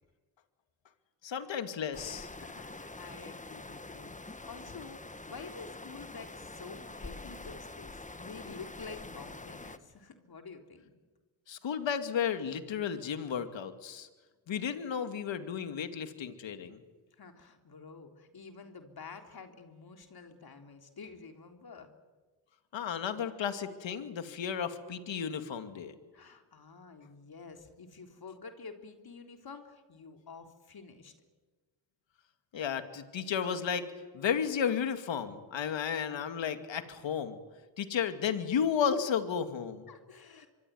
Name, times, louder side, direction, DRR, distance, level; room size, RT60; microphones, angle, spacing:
voice 1, 1.2-2.3 11.5-14.1 14.5-16.8 22.7-25.9 32.5-33.9 34.1-37.4 37.8-39.9, left 7 dB, 75° left, 9 dB, 2.5 m, -33 dB
sound 1, 1.9-9.8, left 2 dB, 15° left, 1.5 m, -45 dB
voice 2, 2.3-10.9 17.1-21.9 26.1-31.1 39.9-40.5, left 4 dB, 55° left, 5 dB, 3.7 m, -49 dB
25.5 x 23.5 x 9.5 m, 1.3 s
cardioid pair, 70°, 45 cm